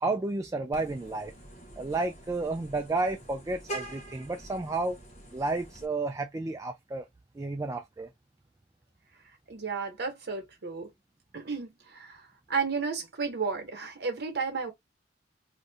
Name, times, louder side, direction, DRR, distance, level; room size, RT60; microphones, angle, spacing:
voice 1, 0.0-1.3 1.8-5.0 5.3-7.1 7.4-8.1, right 3 dB, 20° right, 0.3 m, -31 dB
Vehicle horn car horn honking, 0.7-5.9, right 1 dB, 40° left, 0.8 m, -45 dB
voice 2, 9.5-10.9 11.3-14.7, right 5 dB, 60° right, 1.1 m, -33 dB
2.7 x 2.4 x 3.4 m
head